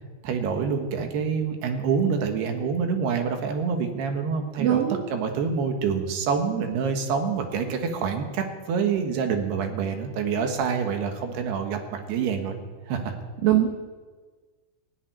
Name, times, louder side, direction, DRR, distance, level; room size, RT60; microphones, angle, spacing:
voice 1, 0.2-4.8 5.1-12.6 12.9-13.1, right 6 dB, 65° right, 5 dB, 3.1 m, -26 dB
voice 2, 4.6-5.0 13.4-13.7, right 12 dB, 80° right, 4 dB, 2.0 m, -20 dB
17.0 x 8.8 x 9.4 m, 1.4 s
omnidirectional pair, 5.5 m